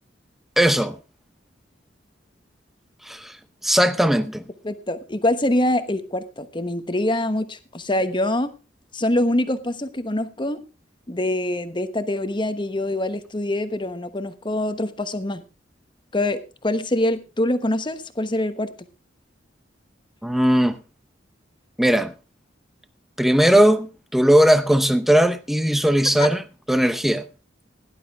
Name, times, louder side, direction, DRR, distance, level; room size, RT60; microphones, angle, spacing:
voice 1, 0.6-1.0 3.1-3.3 3.6-4.4 20.2-20.8 21.8-22.1 23.2-26.4 26.7-27.2, right 1 dB, ahead, 0.7 m, -18 dB
voice 2, 4.6-8.5 8.9-10.6 11.1-15.4 16.1-18.7 26.2-26.3, left 1 dB, 25° left, 1.1 m, -24 dB
17.0 x 11.0 x 3.5 m
head